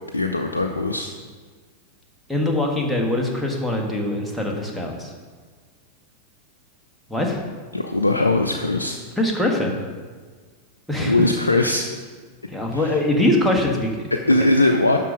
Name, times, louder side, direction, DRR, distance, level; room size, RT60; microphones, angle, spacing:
voice 1, 0.1-1.1 7.7-9.0 11.0-11.8 12.7-12.8 14.1-15.1, left 2 dB, 80° left, 3 dB, 0.5 m, -20 dB
voice 2, 2.3-5.1 7.1-7.4 9.2-9.8 10.9-11.1 12.5-14.1, left 1 dB, ahead, -1 dB, 1.5 m, -22 dB
11.0 x 4.0 x 6.2 m, 1.5 s
figure-of-eight pair, 90°, 0 cm